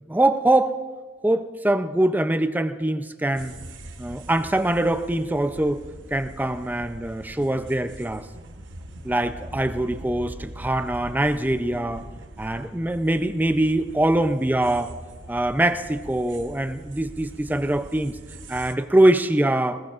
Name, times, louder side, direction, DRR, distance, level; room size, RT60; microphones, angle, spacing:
voice 1, 0.1-0.7 1.2-3.6 4.0-5.8 6.1-8.3 9.0-12.0 12.4-14.9 15.3-18.2 18.5-19.8, right 1 dB, 10° right, 9 dB, 0.5 m, -23 dB
sound 1, 3.4-18.7, right 1 dB, 80° right, 1.1 m, -42 dB
20.0 x 19.5 x 2.5 m, 1.4 s
head